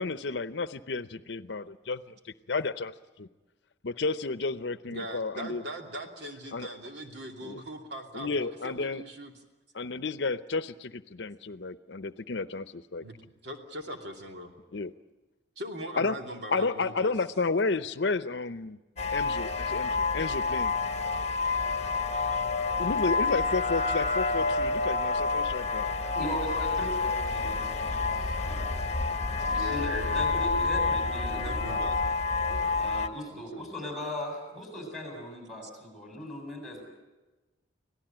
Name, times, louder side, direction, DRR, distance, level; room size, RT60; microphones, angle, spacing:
voice 1, 0.0-3.3 3.8-5.6 6.5-6.7 7.4-7.6 8.1-9.0 9.7-13.0 14.7-14.9 16.0-16.2 16.5-18.8 19.1-20.7 22.8-25.9, left 3 dB, 70° left, 13 dB, 0.7 m, -32 dB
voice 2, 4.9-9.3 13.0-13.2 13.4-14.5 15.6-17.1 29.5-30.2 31.3-32.0 32.5-32.8 33.3-33.7, equal, 65° right, 3 dB, 2.8 m, -40 dB
sound 1, 19.0-33.1, left 3 dB, 35° left, 1.2 m, -28 dB
voice 3, 26.1-28.9 29.4-31.8 32.8-36.8, left 1 dB, ahead, 2 dB, 7.6 m, -38 dB
26.5 x 17.5 x 9.0 m, 1.2 s
head